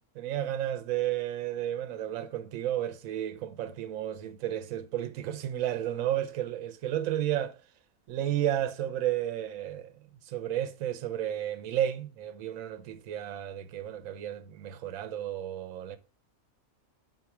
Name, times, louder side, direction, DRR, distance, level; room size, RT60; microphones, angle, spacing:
voice 1, 0.2-7.6 8.1-9.9 10.3-16.0, right 11 dB, 75° right, 1.0 m, -32 dB
4.8 x 4.0 x 5.7 m
omnidirectional pair, 1.5 m